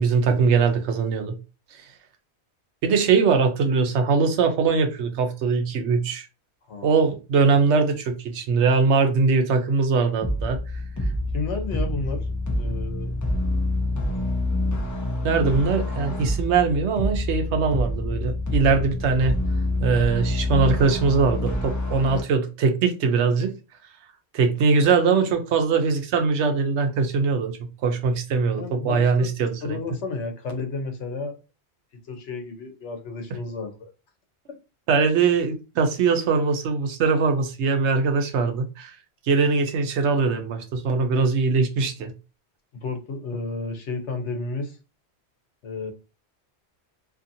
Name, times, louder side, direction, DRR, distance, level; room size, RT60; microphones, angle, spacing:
voice 1, 0.0-1.3 1.7-1.9 2.8-6.3 6.8-10.6 15.2-19.4 19.8-23.5 24.3-27.5 27.8-29.8 34.9-39.0 39.2-42.1, right 4 dB, 80° right, 0.9 m, -21 dB
voice 2, 6.7-7.0 11.3-13.1 28.6-29.4 29.6-31.3 32.1-33.9 42.8-44.8 45.6-45.9, left 3 dB, 85° left, 1.1 m, -32 dB
sound 1, 10.2-22.2, left 1 dB, 25° left, 0.5 m, -27 dB
2.8 x 2.6 x 2.6 m
omnidirectional pair, 1.1 m